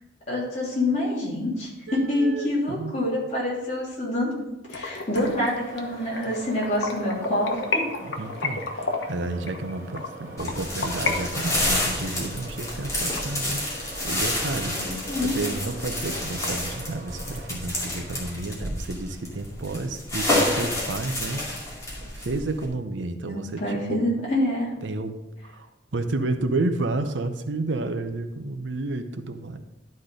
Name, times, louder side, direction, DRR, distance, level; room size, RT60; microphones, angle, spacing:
voice 1, 0.3-7.9 14.7-15.4 23.2-24.7, left 1 dB, 40° left, -6 dB, 3.2 m, -27 dB
voice 2, 1.9-3.0 8.0-21.4 22.0-24.0 24.8-29.6, right 2 dB, 85° right, 8 dB, 0.7 m, -31 dB
sound 1, 4.7-11.1 11.5-14.0 14.4-14.5 14.9-15.0 15.3-15.4 15.7-16.5, left 3 dB, 90° left, 1.1 m, -32 dB
sound 2, 5.2-17.5, right 1 dB, 15° right, 2.3 m, -43 dB
sound 3, 10.4-22.7, left 1 dB, 20° left, 2.3 m, -29 dB
12.0 x 4.3 x 5.1 m, 0.96 s
head